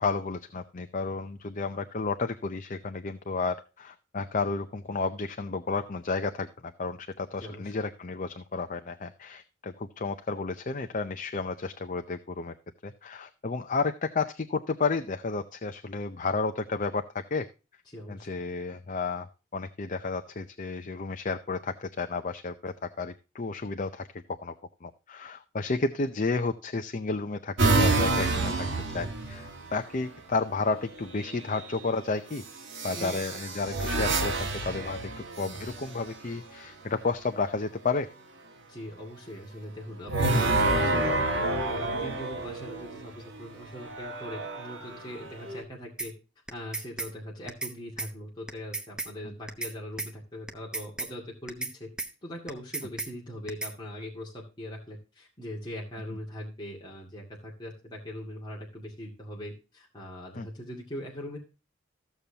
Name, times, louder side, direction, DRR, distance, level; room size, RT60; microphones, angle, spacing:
voice 1, 0.0-12.5 12.8-17.5 18.1-19.3 19.5-24.5 24.8-32.4 32.8-34.3 34.7-35.1 35.4-38.1 49.2-49.3 60.4-60.5, left 4 dB, 35° left, 8 dB, 0.5 m, -32 dB
voice 2, 7.4-7.7 17.9-18.3 32.9-33.2 38.7-41.3 41.6-46.1 46.5-51.9 52.2-61.4, equal, 20° left, -3 dB, 2.1 m, -41 dB
sound 1, 27.6-29.8 31.1-31.6 32.7-36.1 40.1-43.0 43.8-45.6, right 2 dB, 60° right, 1.9 m, -28 dB
sound 2, 46.0-46.1 46.5-47.1 47.5-47.7 48.0-48.1 48.5-49.1 49.5-49.7 50.0-50.1 50.5-51.1 51.5-51.7 52.0-52.1 52.5-53.1 53.5-53.7, right 2 dB, 5° right, 0.8 m, -34 dB
14.5 x 6.9 x 2.8 m, 0.31 s
head